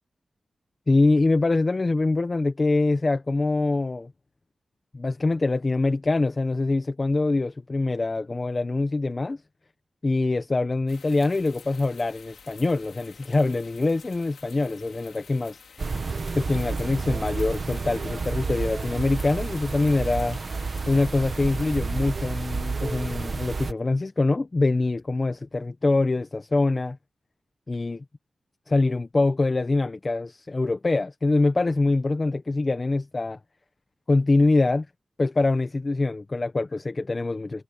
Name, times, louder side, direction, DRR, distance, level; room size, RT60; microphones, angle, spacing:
voice 1, 0.9-4.1 4.9-9.4 10.0-15.9 16.3-20.4 20.9-27.0 27.7-28.0 28.7-33.4 34.1-34.8 35.2-37.6, left 3 dB, 35° left, 1.3 m, -24 dB
sound 1, 10.9-21.8, left 6 dB, 80° left, 4.3 m, -50 dB
sound 2, 15.8-23.7, right 4 dB, 50° right, 2.0 m, -30 dB
cardioid pair, 75°, 0 cm